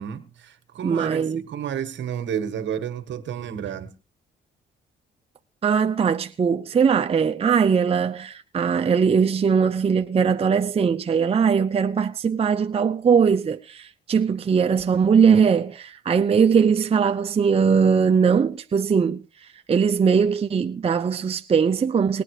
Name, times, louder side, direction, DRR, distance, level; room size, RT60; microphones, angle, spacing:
voice 1, 0.0-3.9, right 8 dB, 65° right, 1.6 m, -31 dB
voice 2, 0.8-1.4 5.6-22.2, right 6 dB, 30° right, 0.6 m, -20 dB
19.5 x 9.2 x 4.9 m
cardioid pair, 90°, 20 cm